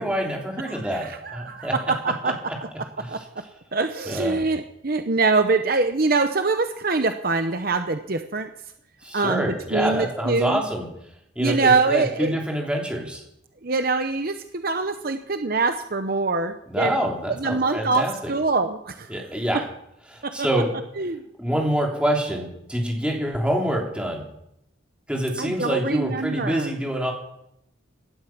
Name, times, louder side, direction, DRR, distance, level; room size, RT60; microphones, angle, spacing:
voice 1, 0.0-1.0 1.3-1.7 3.0-3.1 4.1-4.4 9.0-10.9 11.3-13.2 16.7-18.1 19.1-19.6 20.1-20.7 21.4-24.2 25.1-27.1, right 1 dB, 5° right, -1 dB, 3.2 m, -26 dB
voice 2, 0.6-3.2 3.7-8.5 9.1-10.6 11.4-12.3 13.6-17.0 17.4-19.2 19.5-19.6 20.2-20.5 21.0-21.2 25.4-26.7, right 3 dB, 50° right, 8 dB, 0.8 m, -24 dB
17.0 x 12.0 x 6.0 m, 0.78 s
head